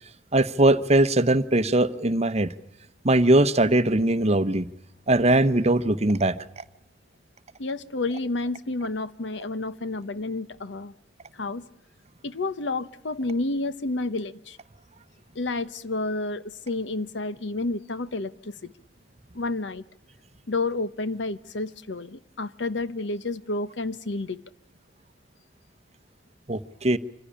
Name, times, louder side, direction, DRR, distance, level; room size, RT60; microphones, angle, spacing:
voice 1, 0.3-2.5 3.0-4.7 5.1-6.4 26.5-27.0, right 2 dB, 35° right, 13 dB, 0.9 m, -20 dB
voice 2, 7.6-10.9 11.3-11.6 12.2-14.6 15.3-18.7 19.3-19.8 20.5-24.4, left 2 dB, 70° left, 15 dB, 0.9 m, -30 dB
25.5 x 15.5 x 10.0 m, 0.77 s
head